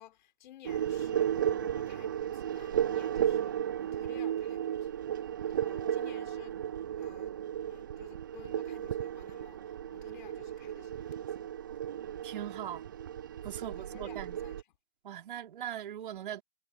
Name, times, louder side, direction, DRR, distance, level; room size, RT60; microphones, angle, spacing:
voice 1, 0.0-5.0 5.4-6.6 7.0-11.5 13.6-14.6, left 12 dB, 45° left, 6.1 m, -54 dB
sound 1, 0.6-14.6, right 10 dB, 20° right, 0.4 m, -34 dB
voice 2, 12.2-12.8 13.4-14.4 15.0-16.4, right 11 dB, 50° right, 4.6 m, -40 dB
figure-of-eight pair, 120°, 33 cm